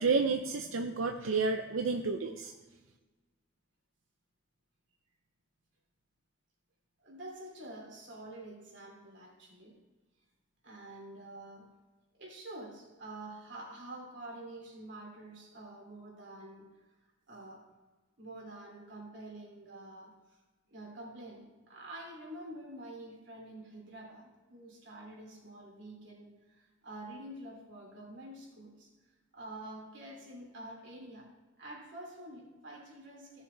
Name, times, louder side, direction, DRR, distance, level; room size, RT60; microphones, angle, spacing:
voice 1, 0.0-2.5, right 4 dB, 90° right, 5 dB, 0.6 m, -30 dB
voice 2, 7.0-9.8 10.6-11.7 12.2-16.7 17.3-17.7 18.2-20.4 20.7-28.9 29.3-31.3 31.6-33.4, right 1 dB, 60° right, -1 dB, 3.1 m, -47 dB
16.0 x 6.9 x 3.3 m, 1.2 s
head